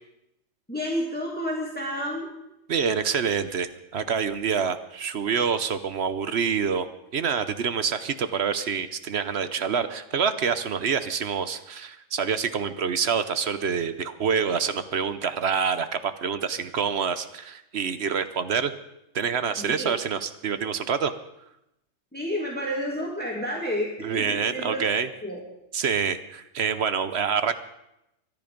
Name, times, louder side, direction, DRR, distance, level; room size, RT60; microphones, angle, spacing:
voice 1, 0.7-2.3 19.6-19.9 22.1-24.8 25.2-25.4, equal, 5° left, -2 dB, 2.2 m, -30 dB
voice 2, 2.7-6.9 7.1-18.7 19.1-21.1 24.0-25.1 25.7-27.5, right 6 dB, 60° right, 11 dB, 1.1 m, -26 dB
24.0 x 10.5 x 5.2 m, 0.84 s
omnidirectional pair, 1.3 m